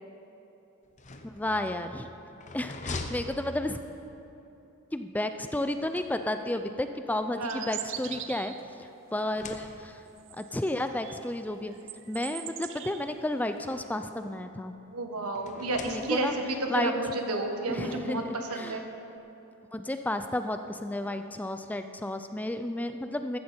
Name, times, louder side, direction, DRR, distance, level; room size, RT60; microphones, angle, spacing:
sound 1, 0.8-4.1 5.4-6.6 7.4-8.8 9.2-10.1 11.1-11.2 11.5-11.6 12.8-14.1 15.3-16.5, left 3 dB, 35° left, 0.8 m, -44 dB
voice 1, 1.2-2.1 2.5-3.8 4.9-8.5 8.8-10.0 10.3-11.7 12.1-14.7 15.8-16.3 16.7-16.9 17.7-18.8 19.7-23.4, left 1 dB, 5° left, 8 dB, 0.4 m, -32 dB
voice 2, 7.4-7.7 14.9-18.8, right 2 dB, 85° right, 4 dB, 1.5 m, -31 dB
sound 2, 7.5-8.7 10.2-11.3 11.7-13.1, right 12 dB, 60° right, 0.6 m, -41 dB
14.0 x 14.0 x 4.4 m, 3.0 s
head